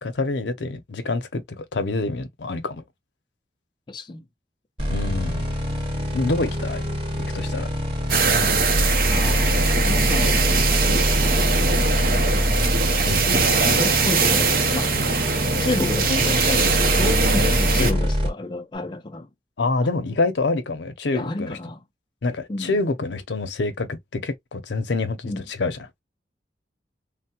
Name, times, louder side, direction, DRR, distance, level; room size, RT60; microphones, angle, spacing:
voice 1, 0.0-2.8 4.9-5.5 6.1-6.8 7.3-7.7 13.1-13.3 17.8-18.0 19.6-21.6 22.2-25.3 25.6-25.8, left 3 dB, 85° left, 0.6 m, -26 dB
voice 2, 3.9-4.3 9.1-11.6 12.9-14.9 15.6-19.3 21.1-21.8 22.5-22.8 25.2-25.5, left 2 dB, 25° left, 0.4 m, -30 dB
sound 1, 4.8-18.3, equal, 30° right, 1.0 m, -24 dB
sound 2, 8.1-17.9, right 4 dB, 55° right, 0.6 m, -22 dB
3.3 x 2.1 x 2.8 m
head